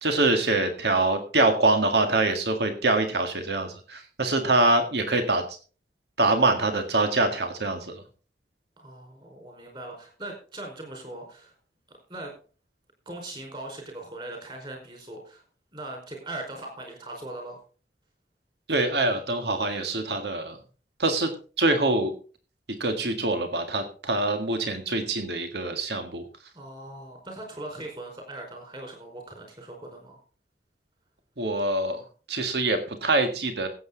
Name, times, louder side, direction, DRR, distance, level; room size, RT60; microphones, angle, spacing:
voice 1, 0.0-5.6 6.2-8.0 18.7-20.6 21.0-21.3 21.6-22.1 22.7-26.2 31.4-32.0 32.3-33.7, right 2 dB, 75° right, 6 dB, 1.8 m, -24 dB
voice 2, 8.8-11.5 11.9-12.3 13.0-15.4 15.7-17.6 26.5-30.2, right 2 dB, 25° right, 2 dB, 4.6 m, -40 dB
16.0 x 8.2 x 3.9 m, 0.38 s
head